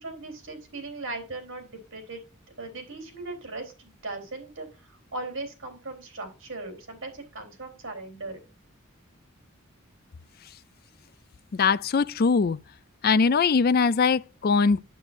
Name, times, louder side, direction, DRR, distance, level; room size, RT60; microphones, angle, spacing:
voice 1, 0.0-2.2 2.6-8.4, right 2 dB, 60° right, 3.7 m, -38 dB
voice 2, 11.5-12.6 13.0-14.8, left 5 dB, 45° left, 0.4 m, -21 dB
9.1 x 8.3 x 2.6 m
head